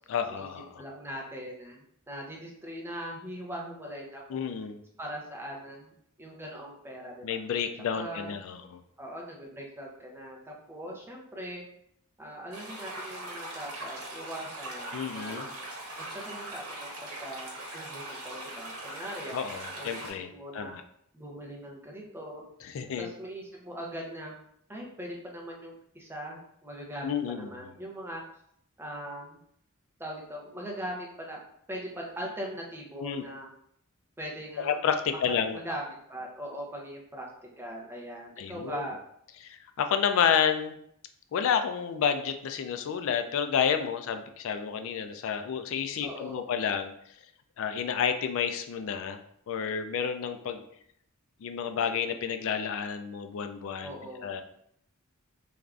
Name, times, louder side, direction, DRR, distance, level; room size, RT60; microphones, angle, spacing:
voice 1, 0.1-0.8 4.3-4.8 7.2-8.8 14.9-15.5 19.3-20.8 22.6-23.1 27.0-27.7 33.0-33.2 34.6-35.6 38.4-38.8 39.4-40.8 41.3-46.9 47.6-49.2 49.5-50.6 51.4-54.0 54.2-54.4, left 7 dB, 70° left, 8 dB, 0.3 m, -30 dB
voice 2, 0.8-4.4 5.0-5.9 6.2-7.4 7.9-8.4 9.0-11.6 12.2-15.5 16.0-19.4 19.8-20.1 20.3-20.8 21.1-22.4 23.0-24.3 24.7-28.2 28.8-29.4 30.0-31.4 31.7-33.5 34.2-34.8 35.1-37.3 37.6-39.0 46.0-46.5 53.8-54.4, equal, 10° right, -2 dB, 0.6 m, -40 dB
sound 1, 12.5-20.1, right 1 dB, 80° right, 1.0 m, -40 dB
3.2 x 2.4 x 2.4 m, 0.69 s
head